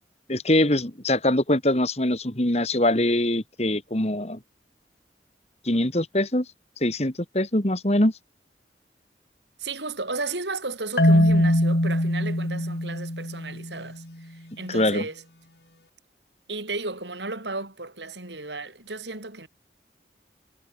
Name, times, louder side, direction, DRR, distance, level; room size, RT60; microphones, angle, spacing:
voice 1, 0.3-4.4 5.6-6.5 6.8-8.1 14.7-15.0, left 1 dB, 35° left, 2.6 m, -23 dB
voice 2, 9.6-14.0 14.3-15.2 16.5-19.5, right 3 dB, 80° right, 6.3 m, -34 dB
Marimba xylophone, 11.0-13.9, equal, 65° left, 4.6 m, -22 dB
head